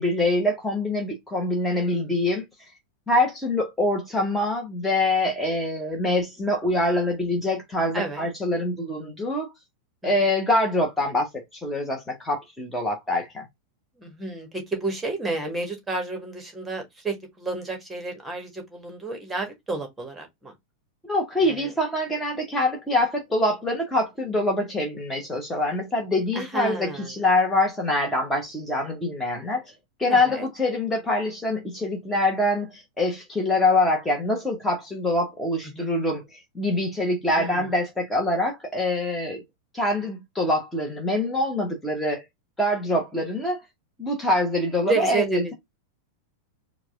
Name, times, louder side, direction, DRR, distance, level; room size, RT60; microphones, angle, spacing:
voice 1, 0.0-2.4 3.1-9.5 10.0-13.4 21.0-29.6 30.0-39.4 39.7-42.2 42.6-43.6 44.0-45.5, left 1 dB, 10° left, 1.2 m, -24 dB
voice 2, 1.7-2.1 7.9-8.3 14.0-20.5 21.4-21.7 26.3-27.1 30.1-30.5 35.7-35.9 37.4-37.6 44.9-45.5, right 3 dB, 10° right, 1.6 m, -31 dB
4.6 x 2.4 x 3.6 m
figure-of-eight pair, 90°, 0 cm